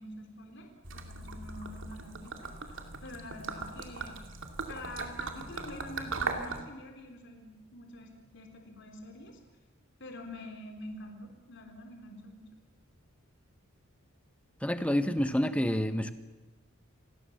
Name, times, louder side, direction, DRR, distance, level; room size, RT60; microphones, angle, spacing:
voice 1, 0.0-4.2 4.7-9.4 10.0-12.5, left 1 dB, 55° left, 4 dB, 3.7 m, -46 dB
Gurgling / Liquid, 0.8-6.6, right 4 dB, 60° right, 2.7 m, -39 dB
voice 2, 14.6-16.1, equal, 5° left, 10 dB, 1.3 m, -28 dB
28.5 x 20.5 x 7.3 m, 1.2 s
head